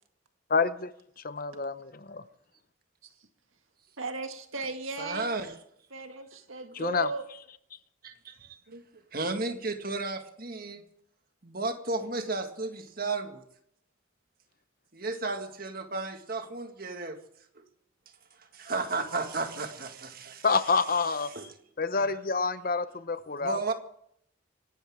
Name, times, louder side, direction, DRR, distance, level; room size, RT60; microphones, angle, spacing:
voice 1, 0.5-0.9 1.2-2.2 6.7-7.1 20.4-21.3 21.8-23.6, left 4 dB, 45° left, 14 dB, 0.7 m, -27 dB
voice 2, 4.0-5.3 5.9-7.3 8.7-9.0 10.8-10.9, right 3 dB, 85° right, 6 dB, 1.9 m, -37 dB
voice 3, 5.0-5.5 8.0-8.6 9.1-10.9 11.4-13.4 14.9-17.2 17.6-17.7 18.4-20.5 21.3-21.5 21.9-22.1 23.4-23.7, right 3 dB, 45° right, 6 dB, 1.8 m, -33 dB
25.0 x 12.5 x 3.6 m, 0.69 s
head